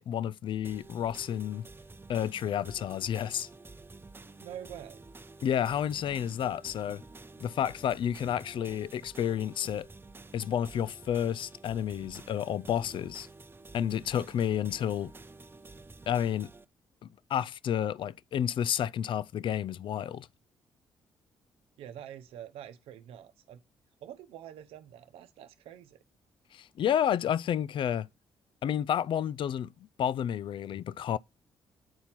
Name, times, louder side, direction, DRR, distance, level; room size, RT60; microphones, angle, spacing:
voice 1, 0.0-1.7 2.1-3.5 5.4-7.0 7.4-9.9 10.3-13.3 13.7-15.1 16.1-16.5 17.0-20.3 26.5-28.1 28.6-29.7 30.0-31.2, left 9 dB, 60° left, 0.4 m, -30 dB
sound 1, 0.6-16.6, right 3 dB, 20° right, 0.8 m, -50 dB
voice 2, 4.4-5.0 21.8-23.6 24.0-26.0, right 10 dB, 80° right, 0.8 m, -46 dB
8.8 x 4.4 x 5.7 m
hypercardioid pair, 50°, 10 cm